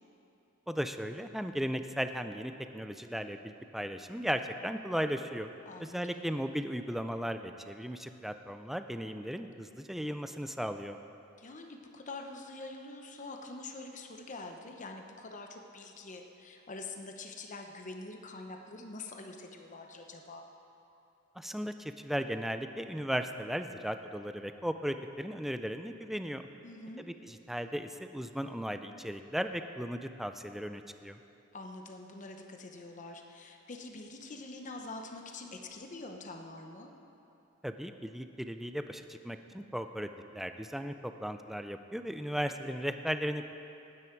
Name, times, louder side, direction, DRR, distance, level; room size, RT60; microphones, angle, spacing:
voice 1, 0.7-5.5 5.8-11.0 21.4-26.4 27.0-31.2 37.6-43.5, equal, ahead, 8 dB, 0.4 m, -36 dB
voice 2, 5.7-6.3 11.4-20.4 26.6-27.0 31.5-36.9, left 2 dB, 40° left, 3 dB, 0.9 m, -45 dB
19.0 x 9.7 x 4.6 m, 2.8 s
head